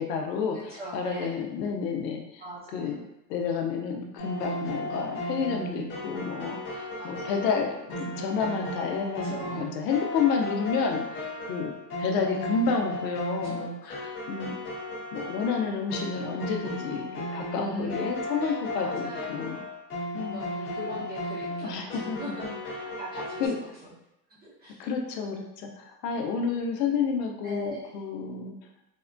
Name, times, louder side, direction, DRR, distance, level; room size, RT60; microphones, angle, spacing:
voice 1, 0.0-2.4 2.7-3.0 3.3-11.7 12.0-14.6 15.1-19.6 20.1-20.4 21.6-22.5 23.4-23.6 24.8-28.5, left 5 dB, 80° left, 3 dB, 0.7 m, -30 dB
voice 2, 0.5-1.4 2.4-3.1 5.5-6.0 7.0-7.4 9.1-9.7 12.2-12.7 13.3-13.7 17.5-19.7 20.3-24.0 24.3-24.9 26.1-26.3 27.4-27.9, right 1 dB, 20° right, -7 dB, 0.7 m, -41 dB
sound 1, 4.2-23.5, left 1 dB, 25° left, 0.5 m, -35 dB
3.5 x 2.1 x 2.5 m, 0.87 s
supercardioid pair, 140°, 48 cm